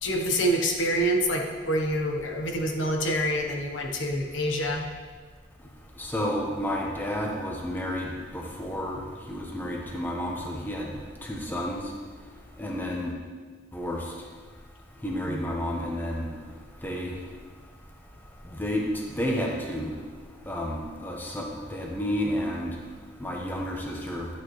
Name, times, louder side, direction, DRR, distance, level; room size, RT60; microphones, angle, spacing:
voice 1, 0.0-4.8 15.3-15.4, equal, 90° left, 2 dB, 1.2 m, -26 dB
voice 2, 6.0-11.9 12.6-13.1 13.7-14.1 15.0-16.3 16.8-17.2 18.4-19.9 20.4-22.8 23.2-24.3, equal, 10° left, -1 dB, 1.1 m, -31 dB
11.5 x 8.6 x 3.3 m, 1.5 s
head